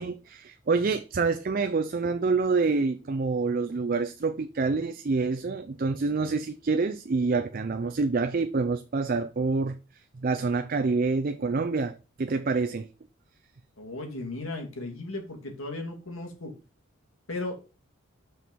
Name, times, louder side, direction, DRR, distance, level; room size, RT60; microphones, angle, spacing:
voice 1, 0.0-9.8 10.1-12.9, right 4 dB, 45° right, 0.4 m, -27 dB
voice 2, 13.8-16.5 17.3-17.6, left 2 dB, 80° left, 2.2 m, -36 dB
6.3 x 4.6 x 5.2 m
head